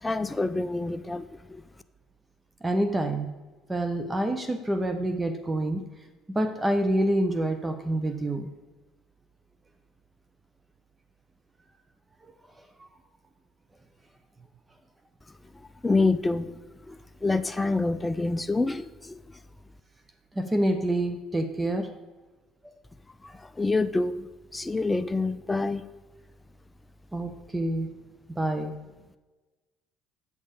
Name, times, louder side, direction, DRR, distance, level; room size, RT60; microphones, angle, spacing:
voice 1, 0.0-1.6 15.8-16.5 16.9-19.2 23.2-24.3 24.5-25.8, left 3 dB, 15° left, 12 dB, 0.4 m, -27 dB
voice 2, 2.6-3.3 3.7-5.8 6.3-8.5 12.8-12.9 20.3-21.9 27.1-27.9 28.4-28.7, right 1 dB, 20° right, 7 dB, 0.8 m, -27 dB
8.1 x 5.4 x 5.1 m, 1.2 s
hypercardioid pair, 75°, 0 cm